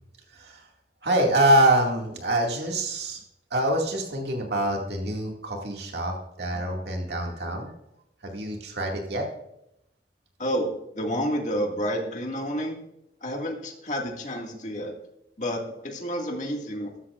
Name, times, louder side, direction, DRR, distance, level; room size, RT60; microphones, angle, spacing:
voice 1, 0.3-0.6 1.0-3.2 3.5-7.7 8.2-9.3, right 1 dB, 70° right, 1 dB, 2.2 m, -25 dB
voice 2, 10.4-12.8 13.2-14.9 15.4-16.9, equal, 40° left, 1 dB, 2.0 m, -30 dB
14.0 x 13.5 x 2.5 m, 0.81 s
head